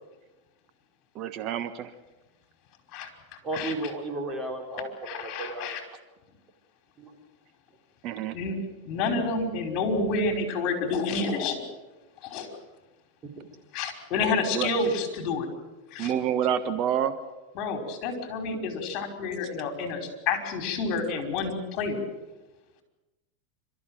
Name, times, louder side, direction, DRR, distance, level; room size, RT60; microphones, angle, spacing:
voice 1, 1.1-1.9 8.0-8.4 14.5-14.7 16.0-17.2, right 9 dB, 45° right, 10 dB, 1.3 m, -27 dB
voice 2, 3.4-5.8 7.0-7.1 13.4-13.5, right 2 dB, 25° right, 3 dB, 4.1 m, -34 dB
voice 3, 5.0-5.8 8.3-8.5 8.8-11.6 12.2-12.5 13.7-15.5 15.9-16.1 17.5-20.0 20.2-22.0, left 3 dB, 45° left, 5 dB, 5.3 m, -29 dB
27.5 x 14.0 x 9.2 m, 1.1 s
supercardioid pair, 130°, 0 cm